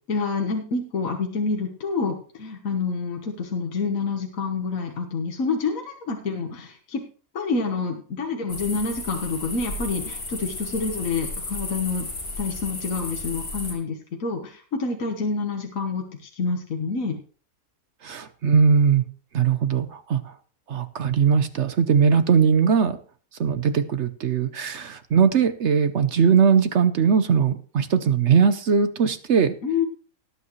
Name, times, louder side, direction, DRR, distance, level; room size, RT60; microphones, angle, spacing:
voice 1, 0.1-7.0 7.3-12.1 12.4-17.2 29.6-29.9, left 4 dB, 65° left, 3 dB, 1.7 m, -27 dB
sound 1, 8.5-13.7, left 2 dB, 85° left, 3.3 m, -34 dB
voice 2, 18.0-19.1 19.3-20.3 20.7-23.0 23.4-29.5, right 6 dB, 55° right, 11 dB, 1.0 m, -20 dB
18.5 x 8.3 x 3.1 m, 0.41 s
omnidirectional pair, 1.5 m